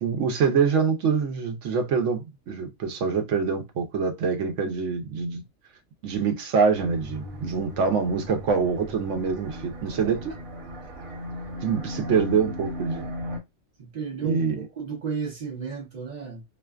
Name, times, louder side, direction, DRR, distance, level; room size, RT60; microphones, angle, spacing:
voice 1, 0.0-5.4 6.0-10.3 11.6-13.1 14.2-14.6, right 5 dB, 70° right, 0.9 m, -25 dB
sound 1, 6.7-13.4, left 1 dB, 90° right, 1.2 m, -37 dB
voice 2, 13.8-16.5, right 6 dB, 40° right, 0.6 m, -33 dB
2.4 x 2.2 x 2.3 m
omnidirectional pair, 1.4 m